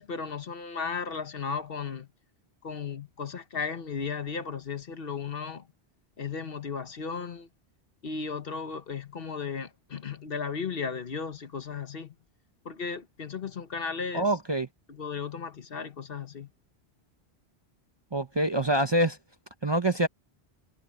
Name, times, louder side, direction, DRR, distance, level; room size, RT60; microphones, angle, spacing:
voice 1, 0.0-2.1 2.6-5.7 6.2-7.5 8.0-12.1 12.6-14.3 14.9-16.5, left 5 dB, 60° left, 1.3 m, -35 dB
voice 2, 14.1-14.7 18.1-19.2 19.6-20.1, right 1 dB, 25° right, 0.7 m, -25 dB
omnidirectional pair, 1.1 m